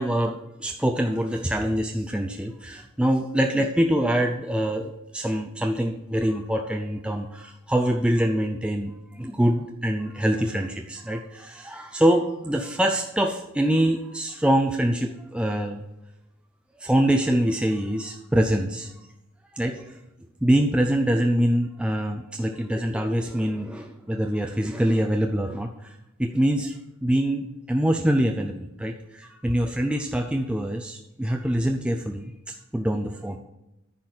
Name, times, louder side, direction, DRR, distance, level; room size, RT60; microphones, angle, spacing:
voice 1, 0.0-15.8 16.8-19.1 19.5-20.0 20.4-33.4, right 1 dB, 5° right, 3 dB, 0.4 m, -25 dB
10.5 x 4.1 x 7.6 m, 0.91 s
head